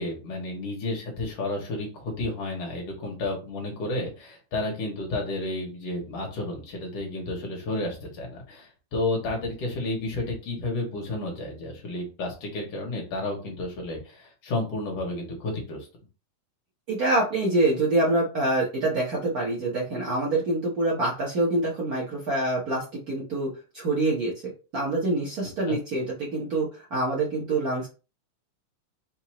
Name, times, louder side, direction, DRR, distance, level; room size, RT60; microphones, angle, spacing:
voice 1, 0.0-15.9 25.7-25.8, left 2 dB, 60° left, 0 dB, 2.4 m, -31 dB
voice 2, 16.9-23.5 23.7-24.3 24.7-27.9, right 2 dB, 90° right, -4 dB, 0.8 m, -25 dB
5.4 x 2.8 x 2.9 m, 0.33 s
omnidirectional pair, 3.3 m